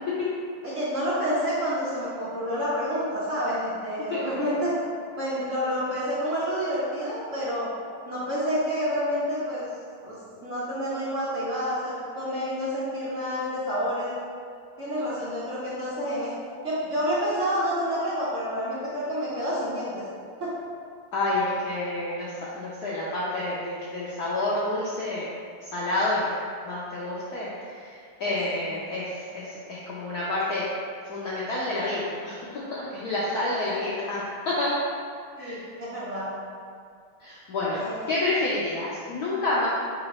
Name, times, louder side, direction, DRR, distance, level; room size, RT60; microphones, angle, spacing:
voice 1, 0.6-4.7 5.2-7.7 8.1-9.6 10.0-14.1 14.8-16.3 16.6-20.0 20.4-20.5 28.2-28.8 33.5-33.6 35.4-36.3 37.7-38.1, equal, 75° right, -9 dB, 0.6 m, -29 dB
voice 2, 21.1-25.3 25.6-26.4 26.6-30.7 31.1-34.8 35.4-35.6 37.2-39.7, left 2 dB, 80° left, -7 dB, 0.8 m, -29 dB
3.6 x 2.9 x 4.1 m, 2.2 s
omnidirectional pair, 2.3 m